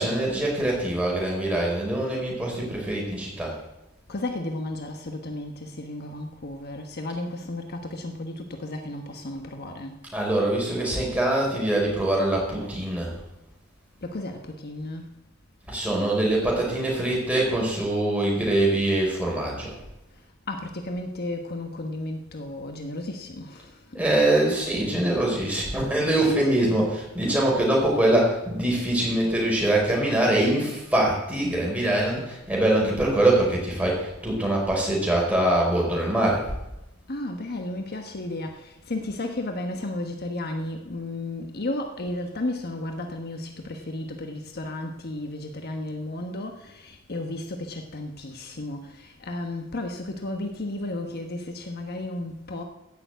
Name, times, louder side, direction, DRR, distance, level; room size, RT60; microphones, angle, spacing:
voice 1, 0.0-3.5 10.1-13.2 15.7-19.7 23.9-36.4, right 1 dB, 5° right, 4.8 m, -23 dB
voice 2, 4.1-10.1 14.0-15.1 20.1-24.1 27.2-27.5 37.1-52.6, left 2 dB, 50° left, 1.2 m, -33 dB
15.5 x 7.0 x 8.1 m
head